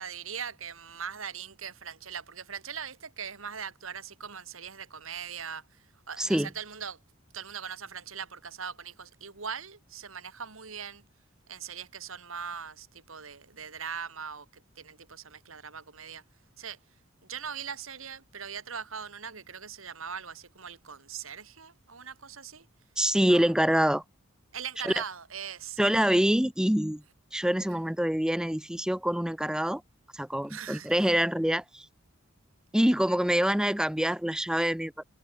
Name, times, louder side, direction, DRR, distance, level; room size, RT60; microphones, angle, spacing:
voice 1, 0.0-5.6 6.1-7.0 7.3-11.0 11.5-16.2 16.6-16.8 17.2-22.7 23.2-23.5 24.5-25.9 30.5-31.1, right 7 dB, 80° right, 2.6 m, -40 dB
voice 2, 6.2-6.5 23.0-24.0 24.8-24.9 25.8-27.0 27.3-29.8 30.1-31.9 32.7-35.0, equal, 5° right, 0.5 m, -25 dB
head